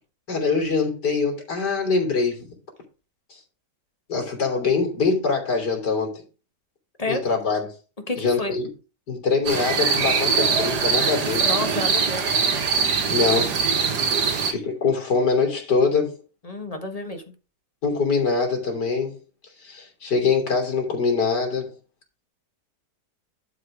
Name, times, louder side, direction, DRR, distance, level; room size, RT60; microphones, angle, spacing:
voice 1, 0.3-2.5 4.1-6.2 7.1-7.7 8.2-8.7 9.1-11.5 13.1-13.5 13.9-16.2 17.8-19.2 19.6-21.7, left 4 dB, 80° left, 3.6 m, -23 dB
voice 2, 8.1-8.5 11.4-12.2 14.2-14.3 16.4-17.2, left 2 dB, 25° left, 1.4 m, -30 dB
sound 1, 9.5-14.5, right 5 dB, 80° right, 2.1 m, -22 dB
11.5 x 4.8 x 4.9 m
omnidirectional pair, 1.8 m